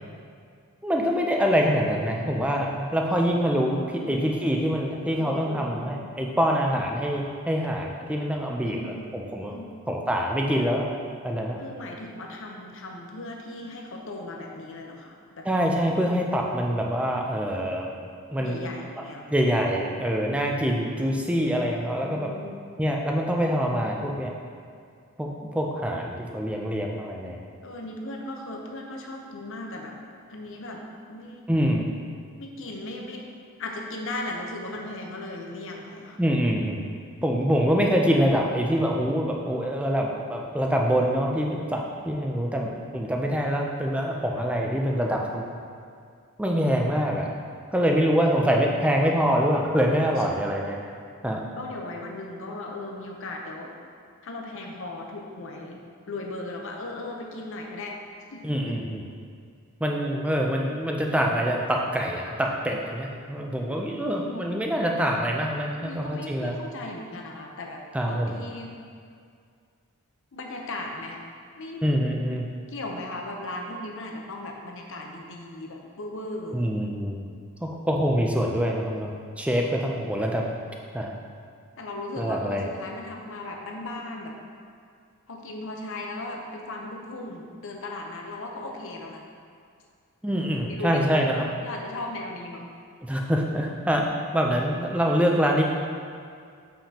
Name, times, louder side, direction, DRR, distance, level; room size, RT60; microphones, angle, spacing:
voice 1, 0.8-9.5 9.9-10.9 11.2-11.6 15.4-17.9 18.3-18.7 19.3-22.3 22.8-24.3 25.2-27.4 31.5-31.9 36.2-36.8 37.2-45.6 46.4-47.3 47.7-50.8 51.2-51.4 58.4-59.0 59.8-66.6 67.9-68.4 71.8-72.5 76.5-77.2 77.6-80.5 80.9-81.1 82.2-82.7 90.2-91.5 93.0-95.6, equal, 5° right, 0 dB, 0.5 m, -25 dB
voice 2, 5.1-5.8 8.6-9.1 9.5-9.7 11.6-15.5 18.4-19.3 22.0-22.5 27.6-30.0 30.3-30.8 31.1-31.4 32.4-33.2 33.6-36.2 37.2-37.5 50.2-50.3 51.6-53.7 54.2-55.8 56.1-58.0 58.3-58.8 64.1-64.5 65.8-67.8 68.1-68.7 70.3-71.2 71.6-71.8 72.7-76.7 81.8-84.3 85.3-89.2 90.7-91.0 91.6-92.7, left 2 dB, 60° left, 1 dB, 0.8 m, -37 dB
7.1 x 5.6 x 2.9 m, 2.3 s
head